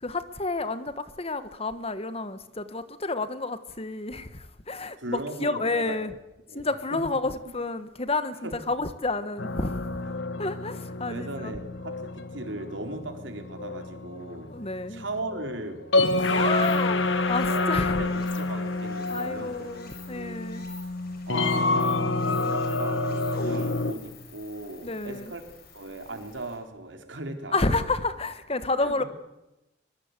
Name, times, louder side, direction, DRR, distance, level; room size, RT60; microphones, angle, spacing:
voice 1, 0.0-6.1 6.5-9.8 10.4-11.5 14.5-15.0 16.3-18.0 19.1-20.7 24.8-25.3 27.5-29.0, left 3 dB, 30° left, 1.4 m, -30 dB
voice 2, 5.0-6.0 6.5-6.7 6.9-7.0 8.4-8.6 11.1-14.5 14.9-15.8 16.1-16.9 17.2-19.7 20.1-20.4 21.3-25.4 25.7-27.6 28.8-29.0, right 2 dB, 80° right, 3.9 m, -37 dB
sound 1, 9.4-23.9, left 2 dB, 80° left, 1.7 m, -28 dB
Stream, 16.0-26.6, left 6 dB, 55° left, 6.9 m, -50 dB
23.0 x 22.5 x 8.2 m
head